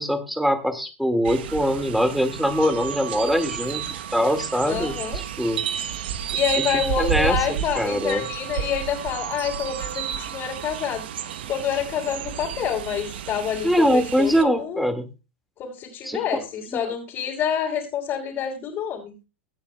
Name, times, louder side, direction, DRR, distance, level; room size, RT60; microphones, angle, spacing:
voice 1, 0.0-3.8 4.1-5.0 5.4-5.6 6.6-8.2 13.6-15.0 16.0-16.2 16.7-16.8, equal, ahead, 8 dB, 1.8 m, -23 dB
sound 1, 1.2-14.4, right 9 dB, 65° right, 0.9 m, -31 dB
voice 2, 4.7-5.2 6.3-11.0 11.5-14.8 15.6-19.1, left 8 dB, 40° left, -3 dB, 3.0 m, -27 dB
24.0 x 8.8 x 2.2 m, 0.30 s
figure-of-eight pair, 90°, 6 cm